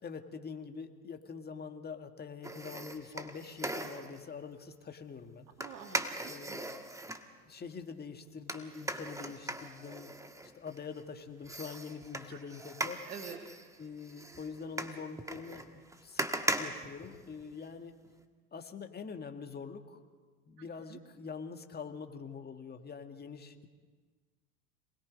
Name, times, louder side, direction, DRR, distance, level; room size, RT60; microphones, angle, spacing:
voice 1, 0.0-5.5 6.3-6.8 7.5-10.1 10.4-13.0 13.8-15.7 16.0-18.0 18.5-20.0 20.5-23.7, left 5 dB, 20° left, 6 dB, 1.8 m, -44 dB
sound 1, 2.4-4.2 5.6-7.3 8.5-11.0 11.4-17.7 18.0-18.1, right 2 dB, 5° right, 1.5 m, -39 dB
voice 2, 5.6-6.6 12.3-12.4 13.1-13.4 20.6-21.0, right 8 dB, 80° right, 3 dB, 2.1 m, -48 dB
27.0 x 20.0 x 5.3 m, 1.4 s
hypercardioid pair, 90°, 46 cm